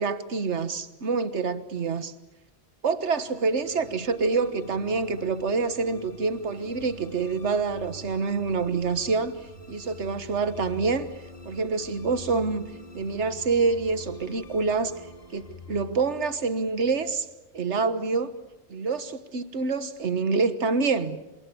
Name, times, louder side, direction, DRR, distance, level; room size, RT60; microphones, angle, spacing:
voice 1, 0.0-2.1 2.8-9.4 9.7-11.1 11.4-12.7 12.9-14.9 15.3-17.3 17.5-18.3 18.7-21.2, right 4 dB, 90° right, 12 dB, 1.6 m, -26 dB
sound 1, 3.2-17.6, left 3 dB, 55° left, 2.8 m, -46 dB
28.5 x 27.0 x 7.0 m, 1.0 s
omnidirectional pair, 1.1 m